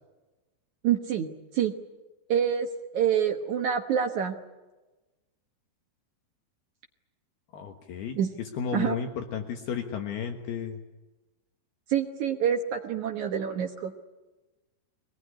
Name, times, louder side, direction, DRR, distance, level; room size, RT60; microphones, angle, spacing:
voice 1, 0.8-1.3 1.5-1.7 2.3-4.4 8.2-8.4 8.7-9.0 11.9-13.9, right 8 dB, 75° right, 3 dB, 1.8 m, -27 dB
voice 2, 7.5-10.8, left 7 dB, 70° left, 4 dB, 3.2 m, -33 dB
23.0 x 20.0 x 9.9 m, 1.1 s
omnidirectional pair, 5.1 m